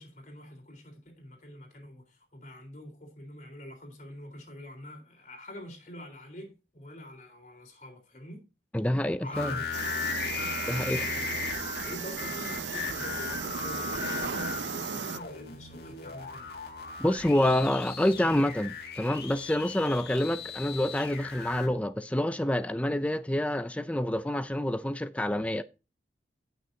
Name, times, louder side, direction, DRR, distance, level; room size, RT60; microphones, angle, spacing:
voice 1, 0.0-8.4 9.2-9.9 11.1-11.3 11.8-16.5, equal, 40° left, 3.8 m, -45 dB
voice 2, 8.7-9.5 10.7-11.0 17.0-25.6, left 1 dB, 5° left, 0.4 m, -27 dB
sound 1, 9.3-21.7, left 5 dB, 60° left, 2.1 m, -37 dB
sound 2, 9.7-15.2, right 7 dB, 85° right, 0.6 m, -36 dB
sound 3, 10.6-18.4, right 1 dB, 20° right, 1.1 m, -54 dB
17.0 x 6.4 x 2.7 m
head